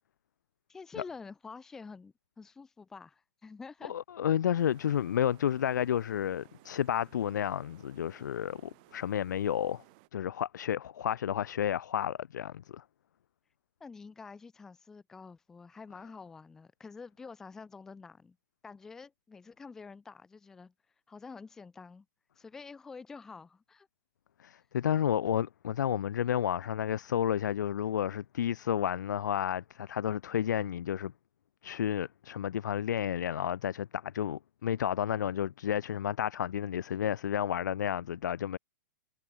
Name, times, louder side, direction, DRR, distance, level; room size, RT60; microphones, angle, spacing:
voice 1, 0.7-3.9 13.8-18.4 18.6-20.7 21.1-22.1 22.4-23.9, left 4 dB, 5° left, 0.5 m, -48 dB
voice 2, 3.8-9.8 10.1-12.8 24.4-31.1 31.6-38.6, left 10 dB, 90° left, 0.5 m, -31 dB
sound 1, 4.6-10.1, right 31 dB, 30° right, 4.7 m, -60 dB
hypercardioid pair, 175°, 10 cm